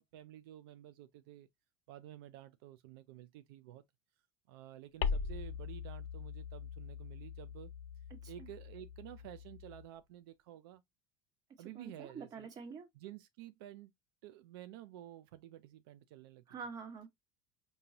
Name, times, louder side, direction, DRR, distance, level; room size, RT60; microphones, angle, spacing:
voice 1, 0.0-1.5 1.9-3.8 4.5-7.7 8.3-10.8 11.6-12.5 12.9-13.9 14.2-16.4, right 12 dB, 85° right, 0.5 m, -51 dB
sound 1, 5.0-9.9, left 6 dB, 70° left, 0.7 m, -41 dB
voice 2, 11.6-12.9 16.5-17.1, right 5 dB, 30° right, 1.4 m, -47 dB
5.3 x 2.7 x 2.9 m
cardioid pair, 155°, 12 cm